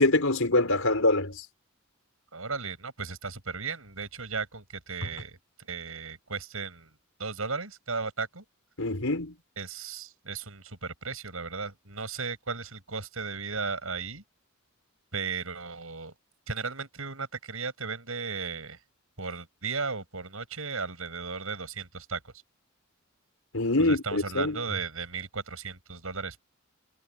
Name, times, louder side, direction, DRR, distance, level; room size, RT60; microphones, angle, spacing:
voice 1, 0.0-1.4 8.8-9.3 23.5-24.6, left 2 dB, 70° left, 5.0 m, -24 dB
voice 2, 2.3-6.9 7.2-8.4 9.6-14.2 15.1-16.1 16.5-18.8 19.2-22.3 23.8-26.4, right 4 dB, 75° right, 6.3 m, -35 dB
head